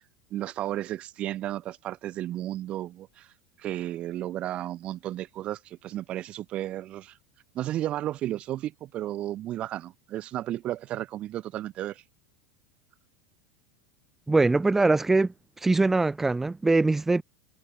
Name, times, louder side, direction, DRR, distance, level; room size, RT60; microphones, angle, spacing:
voice 1, 0.3-3.3 3.6-7.2 7.5-12.0, right 13 dB, 40° right, 7.8 m, -33 dB
voice 2, 14.3-15.3 15.6-17.2, right 3 dB, 10° right, 6.3 m, -22 dB
hypercardioid pair, 105°, 3 cm